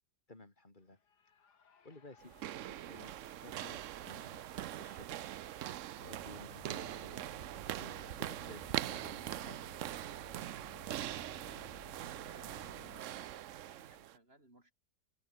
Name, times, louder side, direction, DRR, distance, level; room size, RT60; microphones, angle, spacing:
voice 1, 0.3-1.0 1.8-3.1 3.4-4.5 4.8-5.6 6.0-9.6, left 2 dB, 25° left, 3.6 m, -55 dB
Shout / Cheering, 0.8-9.7, left 6 dB, 75° left, 2.6 m, -67 dB
sound 1, 2.2-14.2, right 13 dB, 65° right, 0.8 m, -42 dB
sound 2, 6.0-13.0, left 8 dB, 50° left, 1.3 m, -58 dB
voice 2, 12.3-14.7, right 1 dB, 35° right, 6.0 m, -62 dB
open air
omnidirectional pair, 1.8 m